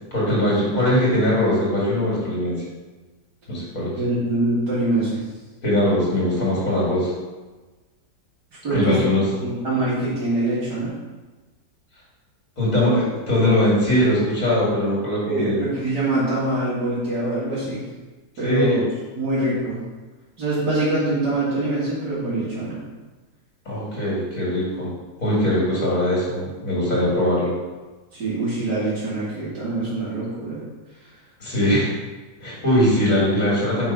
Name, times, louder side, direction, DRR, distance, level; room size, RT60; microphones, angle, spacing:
voice 1, 0.1-2.6 3.5-3.9 5.6-7.1 8.7-9.2 12.6-15.6 18.4-18.8 23.7-24.9 25.2-27.5 31.4-31.9 32.4-33.9, left 1 dB, 45° left, -5 dB, 2.9 m, -21 dB
voice 2, 3.9-5.2 8.6-9.0 9.4-10.9 15.2-17.8 18.4-18.8 19.1-19.8 20.4-22.8 28.1-30.6, right 2 dB, 60° right, -12 dB, 2.8 m, -24 dB
5.9 x 5.3 x 5.5 m, 1.2 s
omnidirectional pair, 2.0 m